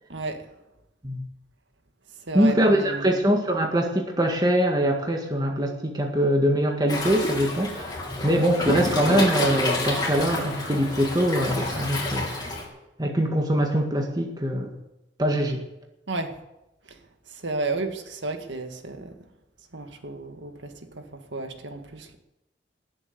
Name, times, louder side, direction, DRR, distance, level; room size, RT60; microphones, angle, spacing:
voice 1, 0.1-0.4 2.3-3.1 16.1-16.4 16.9-17.0 17.3-19.1 19.7-22.2, right 3 dB, 80° right, 6 dB, 1.9 m, -32 dB
voice 2, 2.3-8.0 8.2-12.4 13.0-14.8 15.2-15.6, equal, 20° right, 2 dB, 1.8 m, -23 dB
Waves surf, 6.9-12.6, left 1 dB, 20° left, 3.4 m, -28 dB
18.5 x 8.0 x 8.2 m, 0.92 s
head